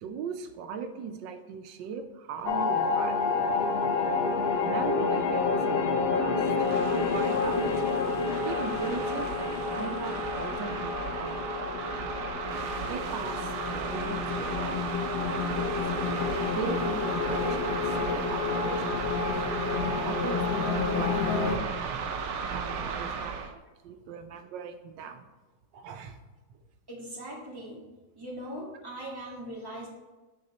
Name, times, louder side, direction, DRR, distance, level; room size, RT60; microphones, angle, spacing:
voice 1, 0.0-4.0 4.6-6.5 6.9-7.7 8.4-11.3 12.9-14.9 15.2-15.8 16.5-19.0 19.3-19.5 19.7-22.0 22.5-23.5 23.8-25.3 25.7-26.2, right 6 dB, 85° right, 7 dB, 1.3 m, -39 dB
sound 1, 2.4-21.6, left 4 dB, 75° left, 0.5 m, -29 dB
sound 2, 6.5-23.5, right 6 dB, 70° right, 0.7 m, -35 dB
voice 2, 26.9-27.8 28.2-29.9, right 1 dB, 15° right, -4 dB, 1.7 m, -40 dB
6.6 x 4.8 x 4.2 m, 1.2 s
omnidirectional pair, 1.9 m